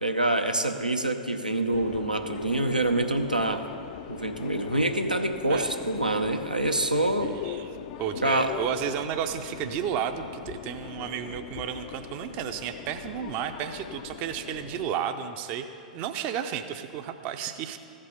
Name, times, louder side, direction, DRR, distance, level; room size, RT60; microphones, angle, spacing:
voice 1, 0.0-3.6 4.1-7.3 8.2-8.6, right 1 dB, 90° right, 5 dB, 0.6 m, -26 dB
Subway metro underground, 1.7-14.9, left 10 dB, 45° left, 0.4 m, -41 dB
voice 2, 7.2-7.7 8.0-15.7 15.9-17.8, right 9 dB, 35° right, 8 dB, 0.5 m, -32 dB
14.0 x 5.4 x 6.5 m, 2.5 s
figure-of-eight pair, 100°, 4 cm